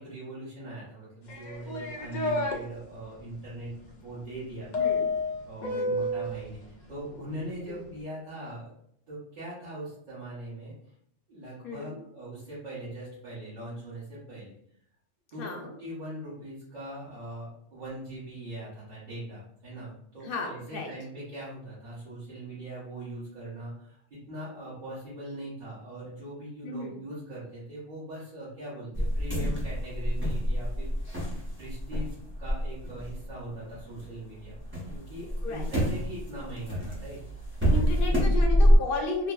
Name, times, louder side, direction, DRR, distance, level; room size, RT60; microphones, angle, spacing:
voice 1, 0.0-3.7 4.0-4.9 5.5-8.7 9.1-10.7 11.3-14.5 15.3-15.5 15.8-30.9 31.6-32.1 32.4-34.6 34.9-37.2 37.7-38.2, right 1 dB, 40° right, -12 dB, 1.0 m, -41 dB
sound 1, 1.3-2.6 4.7-6.4, left 2 dB, 80° left, 0.4 m, -29 dB
voice 2, 4.8-5.1 5.6-5.9 7.7-7.8 11.6-12.0 15.4-15.7 20.2-20.9 26.6-27.0 35.4-35.7 37.7-39.3, left 3 dB, 55° left, 1 dB, 0.7 m, -34 dB
sound 2, 28.9-34.1 34.4-38.8, equal, 15° right, 0.4 m, -26 dB
3.2 x 2.0 x 2.3 m, 0.70 s
omnidirectional pair, 1.3 m